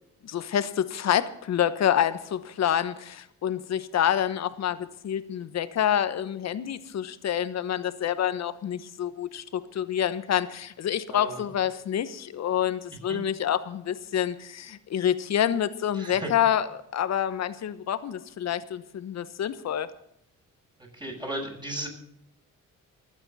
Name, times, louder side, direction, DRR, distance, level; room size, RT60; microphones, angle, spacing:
voice 1, 0.2-19.9, left 10 dB, 60° left, 13 dB, 1.1 m, -27 dB
voice 2, 16.0-16.3 21.0-21.9, right 1 dB, 15° right, -1 dB, 7.4 m, -35 dB
24.5 x 8.9 x 4.2 m, 0.78 s
cardioid pair, 90°, 30 cm